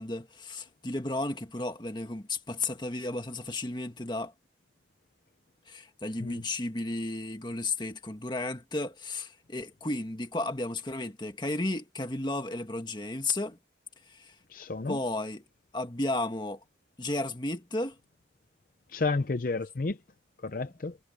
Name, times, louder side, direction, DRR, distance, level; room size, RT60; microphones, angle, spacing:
voice 1, 0.0-4.3 5.7-13.6 14.1-14.3 14.9-15.4 15.7-16.6 17.0-18.0 19.5-19.6, left 2 dB, 25° left, 1.6 m, -33 dB
voice 2, 14.5-15.0 18.9-20.0 20.5-20.9, left 3 dB, 50° left, 0.6 m, -31 dB
head